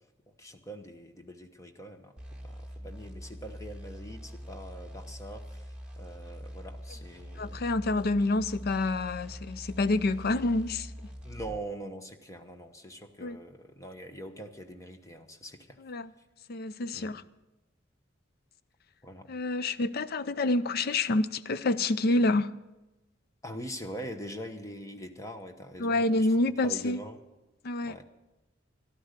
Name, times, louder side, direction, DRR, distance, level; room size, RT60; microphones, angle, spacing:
voice 1, 0.3-2.1 2.4-7.6 11.2-15.8 16.9-17.1 19.0-19.3 23.4-26.3 26.6-27.2 27.8-28.1, right 1 dB, 15° left, 1.0 m, -43 dB
sound 1, 2.2-11.6, equal, 5° right, 1.8 m, -44 dB
voice 2, 7.4-10.9 13.2-13.4 15.8-16.1 16.5-17.2 19.3-22.5 25.8-27.0 27.6-28.0, left 2 dB, 55° left, 0.5 m, -28 dB
14.0 x 12.0 x 6.6 m
head